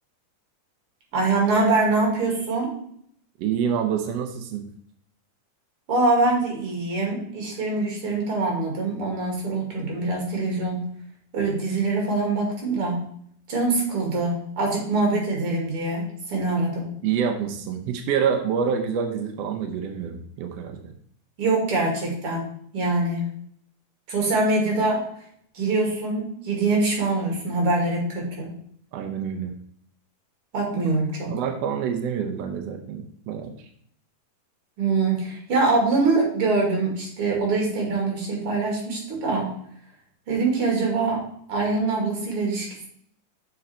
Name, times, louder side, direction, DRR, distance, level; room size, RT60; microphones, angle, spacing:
voice 1, 1.1-2.7 5.9-10.8 11.3-13.0 13.5-16.9 21.4-22.5 22.7-23.2 24.1-25.1 25.5-28.5 30.5-31.3 34.8-39.5 40.3-41.2 41.5-42.9, right 3 dB, 45° right, -1 dB, 2.9 m, -24 dB
voice 2, 3.4-4.6 17.0-20.8 28.9-29.5 30.7-30.8 31.3-33.5, right 7 dB, 85° right, 5 dB, 1.4 m, -27 dB
6.8 x 5.4 x 4.3 m, 0.65 s
omnidirectional pair, 3.8 m